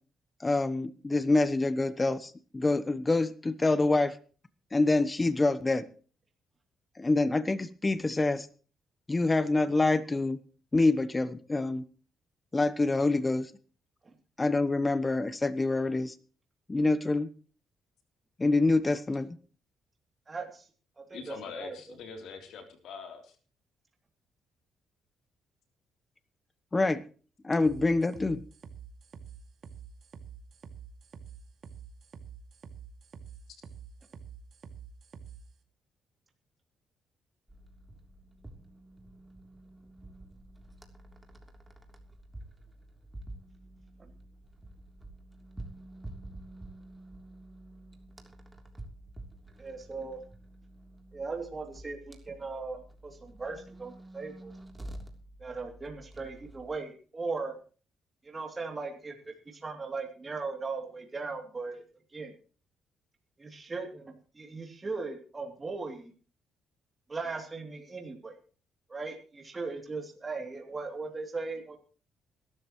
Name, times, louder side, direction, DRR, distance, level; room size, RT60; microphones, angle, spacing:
voice 1, 0.4-4.2 4.7-5.9 7.0-8.5 9.1-10.4 10.7-11.8 12.5-13.5 14.4-16.1 16.7-17.3 18.4-19.4 26.7-27.0 27.4-28.4, left 2 dB, 20° left, 14 dB, 1.0 m, -26 dB
voice 2, 20.3-20.7 21.0-21.9 44.0-44.1 49.6-50.2 51.1-54.5 55.4-57.5 58.2-61.8 62.1-62.3 63.4-66.1 67.1-68.4 68.9-71.8, right 4 dB, 25° right, 2 dB, 2.9 m, -38 dB
voice 3, 21.1-23.4, left 5 dB, 75° left, 4 dB, 3.4 m, -43 dB
sound 1, 27.6-35.4, right 7 dB, 50° right, 2.3 m, -47 dB
sound 2, 37.5-56.8, right 1 dB, 10° right, 3.2 m, -49 dB
21.5 x 12.5 x 3.1 m, 0.39 s
cardioid pair, 90°, 0 cm